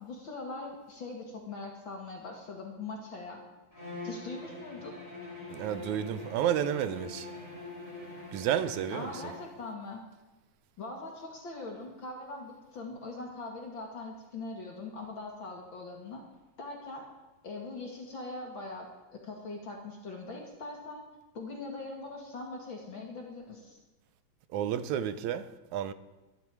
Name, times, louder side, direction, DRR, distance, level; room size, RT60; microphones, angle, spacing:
voice 1, 0.0-3.4 4.0-4.9 8.9-10.0 10.8-16.2 16.6-17.0 17.4-21.0 21.3-23.8, left 3 dB, 45° left, 2.4 m, -41 dB
Bowed string instrument, 3.7-9.5, left 2 dB, 10° right, 4.8 m, -44 dB
voice 2, 5.5-7.3 8.3-9.3 24.5-25.9, right 10 dB, 85° right, 2.1 m, -31 dB
22.0 x 11.0 x 4.8 m
omnidirectional pair, 3.4 m